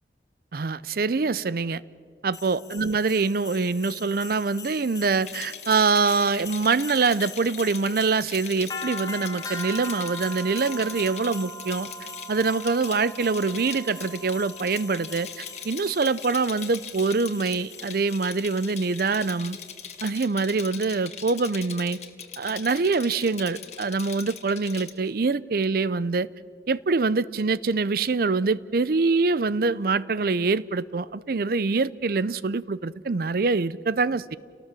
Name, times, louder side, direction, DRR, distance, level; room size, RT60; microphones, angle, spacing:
voice 1, 0.5-1.8 2.2-11.9 12.3-19.6 20.0-22.0 22.4-26.3 26.7-34.4, right 4 dB, 55° right, 0.5 m, -24 dB
sound 1, 2.3-20.0, left 2 dB, 20° left, 1.3 m, -41 dB
Rattle, 5.2-24.9, left 8 dB, 40° left, 1.7 m, -41 dB
29.5 x 18.5 x 7.6 m
head